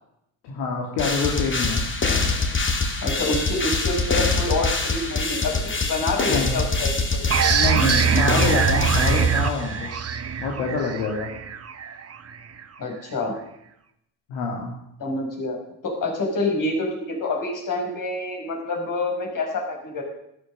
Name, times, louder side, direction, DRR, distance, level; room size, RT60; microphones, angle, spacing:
voice 1, 0.4-1.8 6.3-6.5 7.5-9.9 10.4-11.3 14.3-14.7, left 4 dB, 75° left, 0 dB, 2.4 m, -26 dB
sound 1, 1.0-9.8, left 3 dB, 30° left, 2.5 m, -25 dB
voice 2, 3.0-7.5 12.8-13.3 15.0-15.6 15.8-20.0, left 2 dB, 50° left, 1 dB, 5.6 m, -27 dB
sound 2, 7.3-12.6, right 7 dB, 35° right, 1.3 m, -23 dB
12.5 x 11.5 x 6.6 m, 0.77 s
hypercardioid pair, 70°, 42 cm